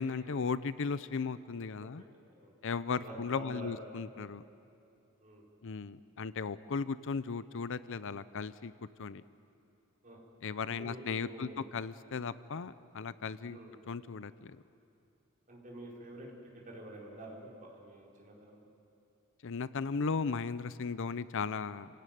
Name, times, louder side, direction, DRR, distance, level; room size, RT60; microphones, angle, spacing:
voice 1, 0.0-2.0 2.6-4.4 5.6-8.7 9.0-9.2 10.4-13.6 13.9-14.6 19.4-21.9, left 5 dB, 65° left, 15 dB, 0.6 m, -36 dB
voice 2, 3.0-3.8 5.2-5.5 10.0-10.2 10.7-11.7 13.5-13.7 15.5-16.3 16.5-18.7, right 1 dB, 40° right, -3 dB, 5.1 m, -48 dB
29.5 x 17.0 x 9.3 m, 2.8 s
head